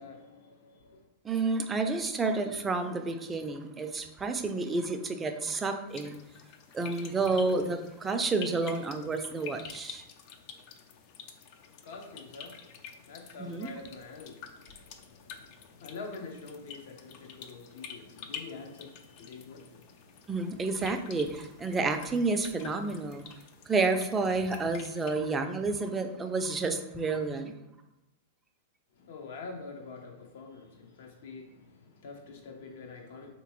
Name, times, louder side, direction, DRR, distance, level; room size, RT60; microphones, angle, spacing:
voice 1, 0.0-1.1 11.6-20.9 28.9-33.3, left 4 dB, 65° left, 0.8 m, -46 dB
voice 2, 1.2-6.2 6.7-10.0 13.4-13.7 20.3-23.3 23.7-27.5, right 3 dB, 15° right, 0.4 m, -30 dB
sound 1, 5.9-25.2, left 7 dB, 50° left, 0.4 m, -49 dB
3.4 x 2.9 x 3.0 m
hypercardioid pair, 115°, 0 cm